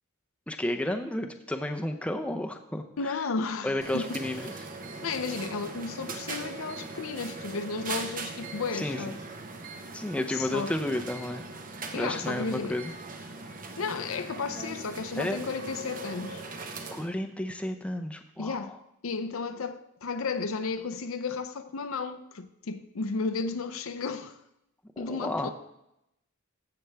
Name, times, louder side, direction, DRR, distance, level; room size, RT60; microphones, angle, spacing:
voice 1, 0.5-2.8 3.6-4.5 8.7-9.0 9.9-11.4 11.9-12.9 15.2-15.5 16.9-18.7 25.1-25.5, left 1 dB, 5° left, 0.6 m, -32 dB
voice 2, 3.0-4.2 5.0-9.2 10.3-10.7 11.9-12.8 13.8-16.4 18.4-18.7 19.0-24.4 25.0-25.5, left 4 dB, 70° left, 0.6 m, -33 dB
sound 1, 3.8-17.1, right 3 dB, 40° right, 0.8 m, -40 dB
14.0 x 6.8 x 3.4 m
head